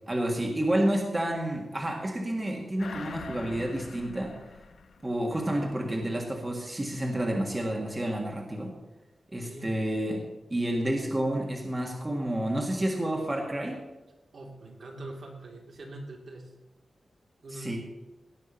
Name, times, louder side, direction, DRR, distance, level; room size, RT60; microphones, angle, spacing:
voice 1, 0.1-4.4 5.0-8.7 9.3-10.2 10.5-13.8 17.5-17.8, right 1 dB, 15° right, 0 dB, 1.7 m, -29 dB
sound 1, 2.8-5.7 6.1-6.2, left 5 dB, 85° left, 0.9 m, -44 dB
voice 2, 14.3-16.5 17.4-17.8, right 2 dB, 60° right, 0 dB, 2.8 m, -43 dB
17.5 x 6.0 x 7.2 m, 1.0 s
wide cardioid pair, 175°, 0 cm